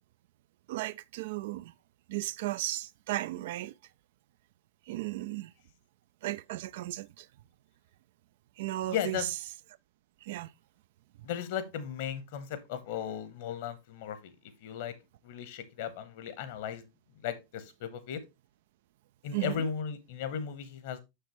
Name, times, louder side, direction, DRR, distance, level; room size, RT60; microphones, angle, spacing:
voice 1, 0.7-1.7 2.1-3.7 4.9-5.5 6.2-7.3 8.6-9.2 10.2-10.5 19.3-19.7, right 16 dB, 55° right, 0.3 m, -35 dB
voice 2, 8.9-9.3 11.2-14.3 14.6-14.9 15.2-16.8 17.2-18.2 19.2-21.0, left 8 dB, 50° left, 1.1 m, -36 dB
6.6 x 6.6 x 3.0 m
figure-of-eight pair, 90°, 0 cm